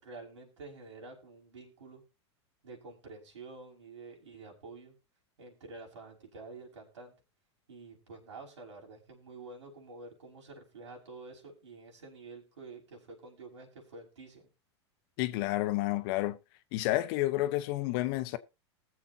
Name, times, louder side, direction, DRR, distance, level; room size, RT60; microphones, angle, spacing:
voice 1, 0.0-2.0 2.6-5.0 5.4-7.1 7.7-14.5, right 3 dB, 85° right, 5.7 m, -49 dB
voice 2, 15.2-16.4 16.7-18.4, left 16 dB, 55° left, 1.0 m, -30 dB
20.5 x 7.4 x 2.8 m
hypercardioid pair, 105°, 15 cm